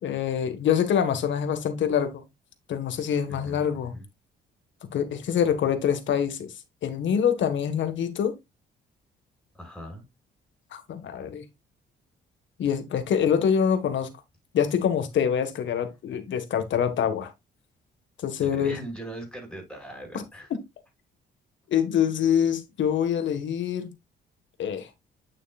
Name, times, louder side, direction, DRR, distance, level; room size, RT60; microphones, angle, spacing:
voice 1, 0.0-2.2 2.7-3.9 4.9-6.5 6.8-8.3 10.7-11.4 12.6-14.1 14.5-17.3 18.2-18.8 20.1-20.2 21.7-23.9 24.6-24.9, left 8 dB, 70° left, 1.8 m, -25 dB
voice 2, 3.3-3.6 3.9-4.1 9.5-10.1 18.4-20.5, right 1 dB, 5° left, 6.0 m, -40 dB
9.4 x 6.4 x 2.5 m
cardioid pair, 90°, 20 cm